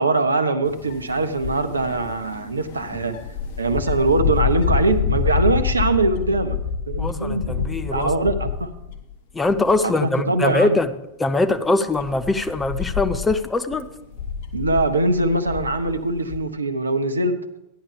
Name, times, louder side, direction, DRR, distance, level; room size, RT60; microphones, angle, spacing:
voice 1, 0.0-3.2 3.6-6.6 6.9-8.7 9.8-10.8 14.5-17.4, right 2 dB, 75° right, 10 dB, 0.8 m, -22 dB
sound 1, 0.6-9.1 9.5-9.9 10.4-10.5 11.4-16.4, left 7 dB, 50° left, 1.2 m, -27 dB
voice 2, 7.0-8.1 9.3-10.9 11.2-13.9, left 2 dB, 10° left, 9 dB, 0.6 m, -22 dB
14.0 x 10.5 x 3.5 m, 0.89 s
figure-of-eight pair, 90°, 0 cm